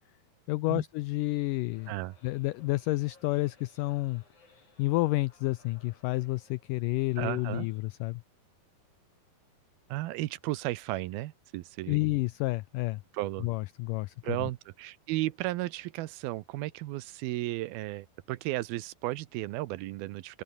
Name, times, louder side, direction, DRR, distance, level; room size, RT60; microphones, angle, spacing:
voice 1, 0.5-1.9 2.2-4.2 4.8-8.2 11.9-13.0 13.4-14.5, left 20 dB, 85° left, 1.9 m, -30 dB
sound 1, 1.7-7.8, left 4 dB, 50° left, 7.4 m, -62 dB
voice 2, 7.2-7.7 9.9-12.0 13.1-13.5 14.2-20.4, right 17 dB, 90° right, 2.7 m, -34 dB
omnidirectional pair, 4.4 m